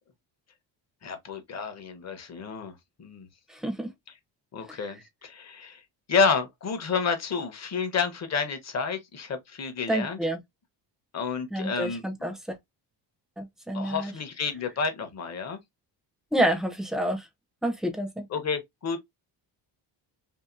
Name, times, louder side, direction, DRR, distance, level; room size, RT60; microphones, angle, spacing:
voice 1, 1.0-3.3 4.5-5.8 6.1-10.2 11.1-12.0 13.7-15.6 18.3-19.0, left 5 dB, 35° left, 0.8 m, -30 dB
voice 2, 3.5-3.9 4.7-4.8 9.9-10.4 11.5-12.6 13.4-14.1 16.3-17.3 17.6-18.3, right 1 dB, ahead, 0.5 m, -28 dB
2.8 x 2.5 x 2.4 m
cardioid pair, 105°, 44 cm